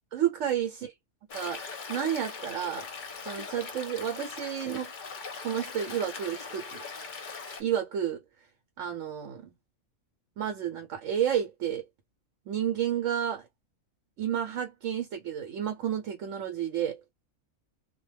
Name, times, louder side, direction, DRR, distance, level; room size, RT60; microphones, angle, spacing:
voice 1, 0.1-0.9 1.3-2.8 3.2-4.9 5.4-6.8 7.6-8.2 8.8-9.5 10.4-11.8 12.5-13.5 14.2-17.0, right 9 dB, 70° right, 1.0 m, -31 dB
Stream, 1.3-7.6, left 5 dB, 45° left, 0.7 m, -40 dB
2.2 x 2.2 x 3.2 m
omnidirectional pair, 1.4 m